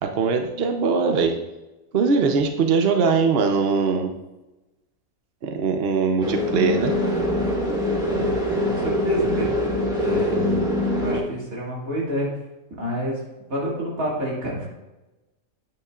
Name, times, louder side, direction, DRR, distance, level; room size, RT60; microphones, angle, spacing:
voice 1, 0.0-1.3 1.9-4.1 5.4-6.9, right 5 dB, 50° right, 5 dB, 0.9 m, -21 dB
sound 1, 6.2-11.2, left 1 dB, 5° right, 1.3 m, -23 dB
voice 2, 8.1-9.7 10.0-10.6 11.0-12.3 12.7-13.2 13.5-14.7, equal, 85° right, -5 dB, 3.0 m, -28 dB
9.6 x 8.9 x 2.4 m, 1.0 s
omnidirectional pair, 1.4 m